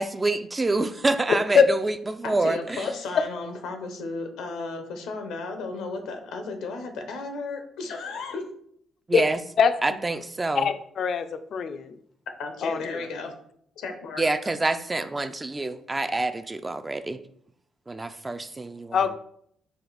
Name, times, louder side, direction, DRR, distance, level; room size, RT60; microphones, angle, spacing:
voice 1, 0.0-2.9 9.1-9.4 9.8-10.7 14.2-17.2 17.9-19.0, right 2 dB, 20° right, 10 dB, 0.3 m, -27 dB
voice 2, 2.2-8.5 12.4-13.3 13.8-14.3, left 3 dB, 85° left, 6 dB, 0.7 m, -34 dB
voice 3, 10.5-12.0 12.6-13.1 18.9-19.1, left 6 dB, 60° left, 10 dB, 0.4 m, -22 dB
4.8 x 2.5 x 3.9 m, 0.67 s
cardioid pair, 90°, 0 cm